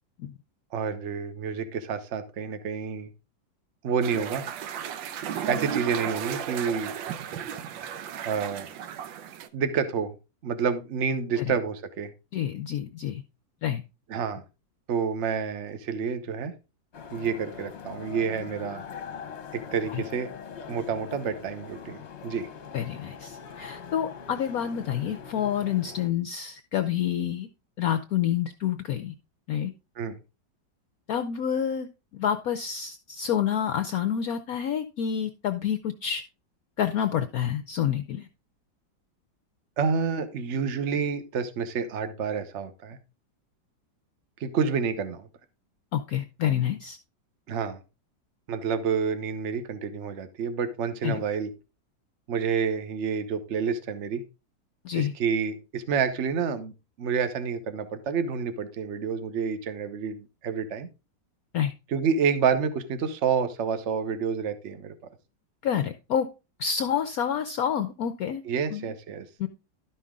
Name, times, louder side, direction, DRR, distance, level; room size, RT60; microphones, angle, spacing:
voice 1, 0.7-3.1 3.8-4.4 5.5-7.0 8.2-8.7 9.5-10.1 10.4-12.1 14.1-14.4 14.9-16.5 17.1-18.8 19.5-20.3 20.7-22.5 30.0-30.2 39.8-43.0 44.4-45.3 47.5-47.8 48.5-51.5 52.3-54.2 54.9-56.7 57.0-60.9 61.9-64.9 68.4-69.3, right 6 dB, 50° right, 10 dB, 1.0 m, -29 dB
sound 1, 4.0-9.5, right 8 dB, 90° right, 1.4 m, -34 dB
voice 2, 12.3-13.2 13.6-13.8 19.9-20.0 22.7-27.5 27.8-29.1 29.5-29.7 31.1-31.9 32.1-36.2 36.8-38.3 45.9-47.0 51.0-51.2 54.8-55.1 61.5-61.7 65.6-66.3 66.6-68.4 68.7-68.8 69.4-69.5, left 9 dB, 70° left, 10 dB, 0.9 m, -28 dB
sound 2, 16.9-26.1, left 7 dB, 45° left, 1.0 m, -42 dB
12.0 x 5.6 x 3.6 m, 0.29 s
omnidirectional pair, 2.0 m